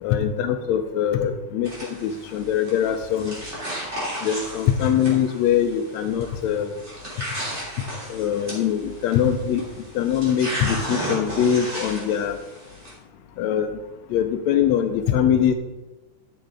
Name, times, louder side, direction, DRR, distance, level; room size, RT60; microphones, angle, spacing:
voice 1, 0.0-1.7 2.0-3.4 4.2-6.7 8.1-9.6 10.0-12.4 13.4-13.7 14.1-15.5, left 9 dB, 80° left, 8 dB, 1.7 m, -22 dB
sound 1, 1.6-12.9, right 1 dB, 20° right, 3.0 m, -34 dB
11.5 x 7.6 x 3.7 m, 1.1 s
omnidirectional pair, 3.5 m